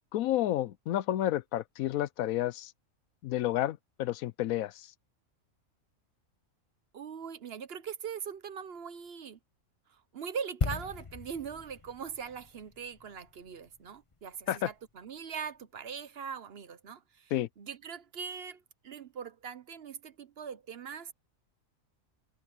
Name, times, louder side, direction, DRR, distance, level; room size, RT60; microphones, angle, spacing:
voice 1, 0.1-2.7 3.2-4.9 14.5-14.7 17.3-17.5, left 13 dB, 85° left, 1.1 m, -30 dB
voice 2, 6.9-9.4 9.9-17.3 17.6-21.1, right 7 dB, 55° right, 0.9 m, -41 dB
sound 1, 10.6-14.3 14.5-14.7, left 4 dB, 25° left, 0.8 m, -38 dB
omnidirectional pair, 1.4 m